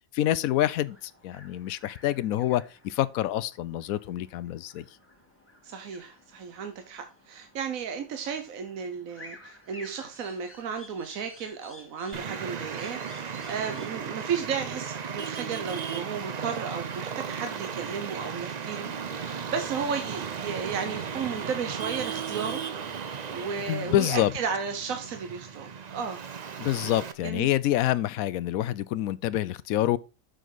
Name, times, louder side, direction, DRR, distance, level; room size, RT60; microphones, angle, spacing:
voice 1, 0.1-4.8 23.7-24.3 26.6-30.0, left 13 dB, 80° left, 1.0 m, -27 dB
sound 1, 0.8-14.1, left 1 dB, 10° left, 1.5 m, -53 dB
voice 2, 5.6-18.9 19.3-22.6 23.3-26.5 27.2-27.5, right 6 dB, 75° right, 1.4 m, -34 dB
Traffic noise roadway noise, 12.1-27.1, right 6 dB, 50° right, 0.5 m, -36 dB
7.7 x 6.5 x 3.9 m
omnidirectional pair, 1.5 m